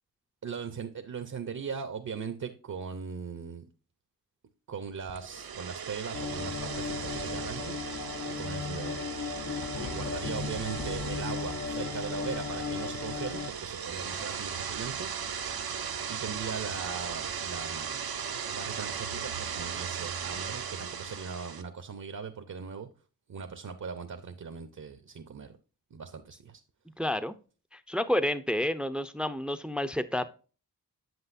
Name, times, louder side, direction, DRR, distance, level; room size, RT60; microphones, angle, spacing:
voice 1, 0.4-3.6 4.7-7.7 8.3-8.9 9.8-15.1 16.1-18.2 18.5-22.9 23.3-25.5 25.9-26.6, right 6 dB, 55° right, 0.9 m, -39 dB
sound 1, 5.1-21.6, right 7 dB, 80° right, 1.0 m, -37 dB
sound 2, 6.1-13.5, left 6 dB, 45° left, 0.6 m, -37 dB
Thunder, 8.8-14.2, left 4 dB, 70° left, 1.1 m, -45 dB
voice 2, 27.0-27.3 27.7-30.3, left 1 dB, 5° right, 0.6 m, -30 dB
8.0 x 7.5 x 2.6 m
cardioid pair, 55°, 36 cm